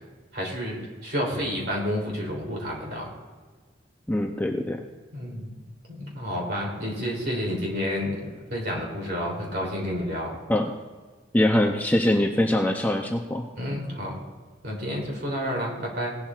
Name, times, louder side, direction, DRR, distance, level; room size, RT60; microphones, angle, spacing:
voice 1, 0.3-3.1 5.1-5.5 5.9-10.3 13.6-14.1 14.6-16.2, equal, 55° right, -2 dB, 3.2 m, -30 dB
voice 2, 4.1-4.8 10.5-10.7 11.3-13.4, left 1 dB, 10° left, 2 dB, 0.5 m, -23 dB
18.0 x 11.5 x 2.4 m, 1.4 s
head